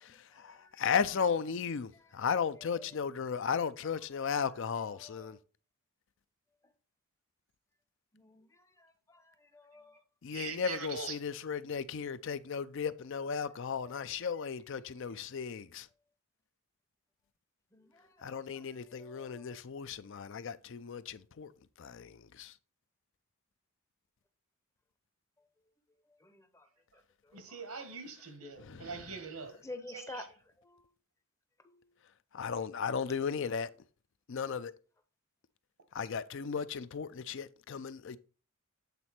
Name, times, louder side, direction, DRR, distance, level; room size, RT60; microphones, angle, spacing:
voice 1, 0.0-5.4 10.2-15.9 18.2-21.5 21.8-22.5 28.7-28.9 32.3-33.7 34.3-34.7 35.9-38.2, left 6 dB, 55° left, 0.4 m, -35 dB
voice 2, 5.0-5.3 8.1-8.5 9.5-9.9 17.7-17.9 18.5-18.6 19.0-19.4 26.2-26.6 29.6-30.2, left 2 dB, 15° left, 0.6 m, -47 dB
voice 3, 10.3-11.3 27.3-30.3, right 5 dB, 85° right, 1.6 m, -43 dB
8.3 x 4.1 x 4.3 m
head